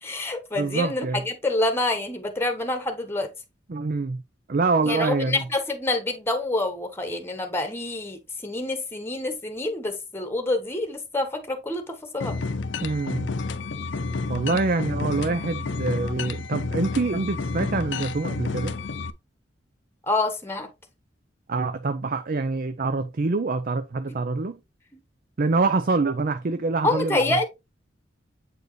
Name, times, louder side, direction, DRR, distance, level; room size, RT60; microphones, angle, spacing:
voice 1, 0.0-3.3 4.8-12.3 20.1-20.7 26.8-27.4, left 2 dB, 15° left, 1.2 m, -27 dB
voice 2, 0.6-1.2 3.7-4.2 4.5-5.4 12.8-13.3 14.3-18.8 21.5-24.6 25.4-27.4, right 3 dB, 50° right, 0.5 m, -25 dB
sound 1, 12.2-19.1, left 3 dB, 70° left, 0.6 m, -30 dB
8.1 x 4.5 x 3.1 m
head